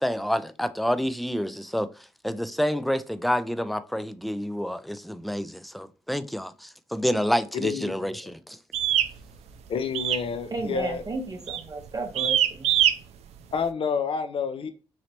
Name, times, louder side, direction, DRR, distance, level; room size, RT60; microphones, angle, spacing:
voice 1, 0.0-1.9 2.2-8.6, equal, ahead, 0.3 m, -28 dB
voice 2, 7.5-8.3 9.7-11.0 13.5-14.7, left 6 dB, 55° left, 0.5 m, -29 dB
sound 1, 8.7-9.1 9.9-10.3 10.6-10.9 11.5-11.7 12.1-12.9, right 10 dB, 75° right, 0.4 m, -22 dB
voice 3, 10.5-12.7, right 3 dB, 35° right, 0.6 m, -33 dB
3.2 x 2.8 x 2.8 m
supercardioid pair, 50°, 11 cm